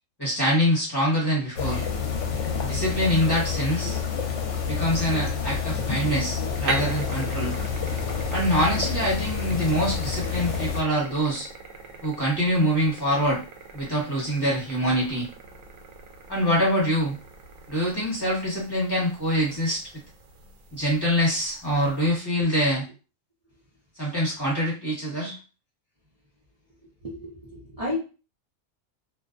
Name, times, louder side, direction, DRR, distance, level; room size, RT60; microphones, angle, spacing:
voice 1, 0.2-1.9 2.6-4.0 4.7-7.5 8.3-11.5 12.0-13.4 13.7-15.3 16.3-17.2 17.7-19.8 20.7-22.8 24.0-25.4, equal, 20° left, -7 dB, 1.0 m, -24 dB
sound 1, 1.6-10.8, left 6 dB, 70° left, 0.9 m, -28 dB
sound 2, 5.1-22.1, right 4 dB, 75° right, 1.0 m, -41 dB
voice 2, 27.0-28.0, left 2 dB, 35° right, -7 dB, 0.6 m, -32 dB
2.6 x 2.1 x 2.5 m, 0.34 s
omnidirectional pair, 1.4 m